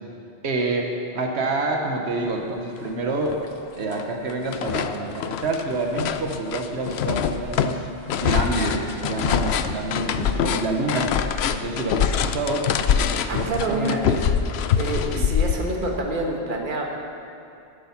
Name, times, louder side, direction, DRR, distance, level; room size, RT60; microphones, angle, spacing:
voice 1, 0.4-3.4 3.8-7.9 8.2-11.2 11.5-12.7 13.3-14.2 15.1-15.3, right 2 dB, 90° right, 2 dB, 1.3 m, -27 dB
sound 1, 2.9-3.0 3.3-4.0 4.3-16.0, left 8 dB, 80° left, 0.8 m, -24 dB
voice 2, 13.3-14.0 14.8-16.8, right 2 dB, 50° right, 1 dB, 1.5 m, -27 dB
12.0 x 9.9 x 5.8 m, 2.6 s
omnidirectional pair, 1.1 m